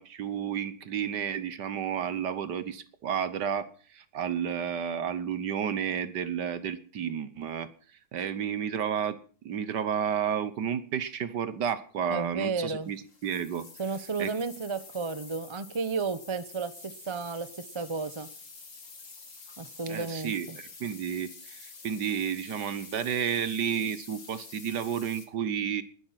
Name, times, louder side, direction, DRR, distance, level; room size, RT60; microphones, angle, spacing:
voice 1, 0.0-7.7 8.1-9.2 9.4-13.0 13.2-13.7 14.2-14.3 19.9-25.8, right 8 dB, 65° right, 14 dB, 1.6 m, -31 dB
voice 2, 12.1-12.9 13.8-17.5 17.7-18.3 19.6-20.6, right 4 dB, 25° right, 13 dB, 0.7 m, -33 dB
sound 1, 12.8-25.3, left 4 dB, 40° left, 2.4 m, -48 dB
20.0 x 11.5 x 5.9 m, 0.42 s
omnidirectional pair, 2.1 m